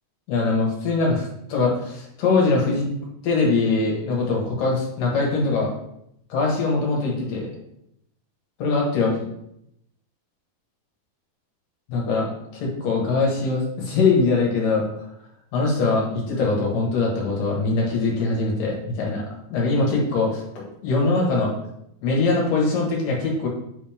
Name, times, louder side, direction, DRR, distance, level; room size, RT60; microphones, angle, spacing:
voice 1, 0.3-2.9 3.2-5.7 6.3-7.5 8.6-9.2 11.9-14.8 15.5-19.2 19.5-21.5 22.0-23.5, left 3 dB, 70° left, -2 dB, 3.1 m, -22 dB
8.3 x 4.3 x 3.5 m, 0.77 s
omnidirectional pair, 4.2 m